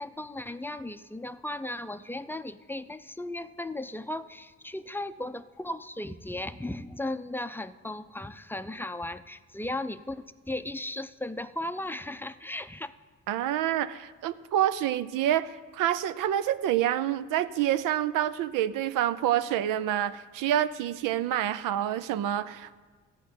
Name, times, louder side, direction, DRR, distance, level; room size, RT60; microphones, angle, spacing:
voice 1, 0.0-12.9, left 1 dB, 5° left, 11 dB, 0.5 m, -36 dB
voice 2, 13.3-22.8, right 11 dB, 85° right, 13 dB, 0.5 m, -27 dB
13.5 x 4.6 x 8.7 m, 1.4 s
supercardioid pair, 60°, 32 cm